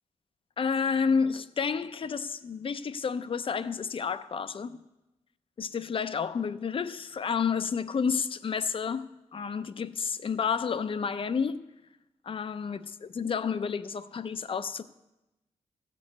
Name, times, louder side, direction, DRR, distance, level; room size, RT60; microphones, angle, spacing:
voice 1, 0.6-4.8 5.6-9.0 9.3-11.7 12.2-14.8, left 6 dB, 45° left, 0.6 m, -30 dB
15.0 x 5.3 x 8.0 m
cardioid pair, 90°, 12 cm